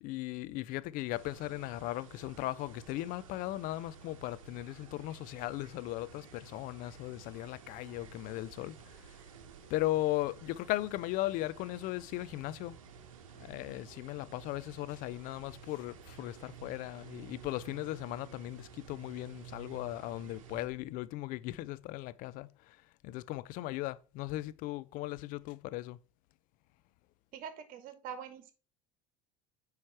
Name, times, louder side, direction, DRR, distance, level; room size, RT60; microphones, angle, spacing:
voice 1, 0.0-9.2 9.7-12.8 13.4-26.0, left 17 dB, 55° left, 0.5 m, -37 dB
sound 1, 1.1-20.7, right 7 dB, 75° right, 0.9 m, -53 dB
voice 2, 27.3-28.5, right 8 dB, 55° right, 1.3 m, -44 dB
9.5 x 3.2 x 4.5 m
hypercardioid pair, 70°, 17 cm